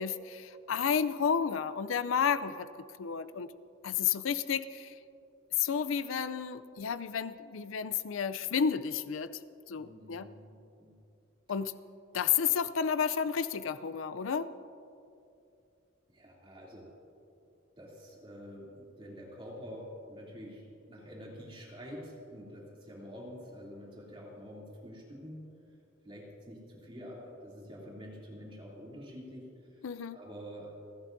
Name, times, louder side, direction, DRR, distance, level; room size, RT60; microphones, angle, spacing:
voice 1, 0.0-2.7 3.0-3.5 3.8-4.9 5.6-9.4 9.7-10.3 11.5-11.7 12.1-14.5 29.8-30.2, left 7 dB, 90° left, 14 dB, 0.5 m, -31 dB
voice 2, 9.8-11.0 16.1-16.9 17.8-20.6 20.9-25.5 26.0-29.8 30.1-30.7, equal, 25° right, -4 dB, 2.9 m, -47 dB
29.0 x 12.0 x 2.7 m, 2.6 s
head